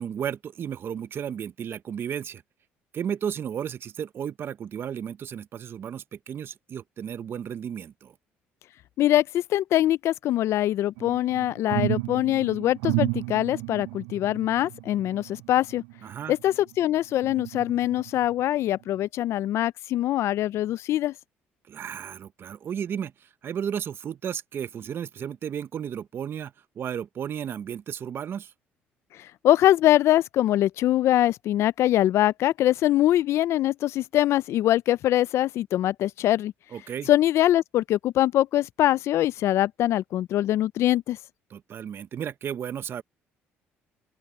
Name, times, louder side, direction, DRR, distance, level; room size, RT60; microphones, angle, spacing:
voice 1, 0.0-2.4 2.9-8.1 16.0-16.3 21.7-28.5 36.7-37.1 41.5-43.0, right 8 dB, 50° right, 0.9 m, -34 dB
voice 2, 9.0-15.8 16.3-21.1 29.4-36.5 37.1-41.2, left 13 dB, 65° left, 0.4 m, -23 dB
sound 1, 11.0-16.7 17.2-18.3 18.8-19.0, right 24 dB, 90° right, 0.4 m, -33 dB
open air
supercardioid pair, 80°, 5 cm